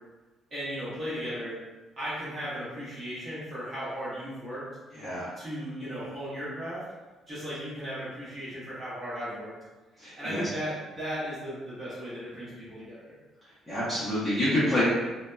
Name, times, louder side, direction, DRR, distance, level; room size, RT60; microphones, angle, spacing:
voice 1, 0.5-1.6 2.0-4.6 5.4-6.8 7.3-9.5 10.1-13.1, equal, 25° right, -10 dB, 1.1 m, -36 dB
voice 2, 4.9-5.3 10.0-10.4 13.7-14.8, left 1 dB, 5° left, -13 dB, 0.7 m, -27 dB
2.7 x 2.2 x 2.2 m, 1.2 s
cardioid pair, 175°, 0 cm